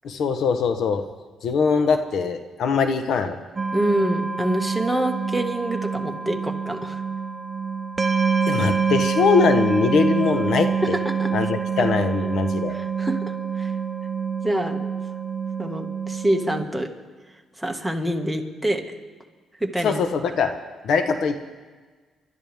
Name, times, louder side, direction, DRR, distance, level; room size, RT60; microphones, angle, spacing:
voice 1, 0.0-1.1 1.4-3.4 8.5-10.9 11.3-12.7 19.8-20.5 20.8-21.5, left 5 dB, 70° left, 7 dB, 1.1 m, -22 dB
sound 1, 3.6-16.6, right 6 dB, 30° right, 0.8 m, -26 dB
voice 2, 3.7-7.0 11.0-11.3 11.8-11.9 12.7-13.7 14.4-14.8 15.6-16.9 17.6-18.8 19.6-20.0, right 1 dB, 5° right, 2 dB, 1.8 m, -26 dB
28.5 x 12.5 x 3.6 m, 1.4 s
cardioid pair, 90°, 0 cm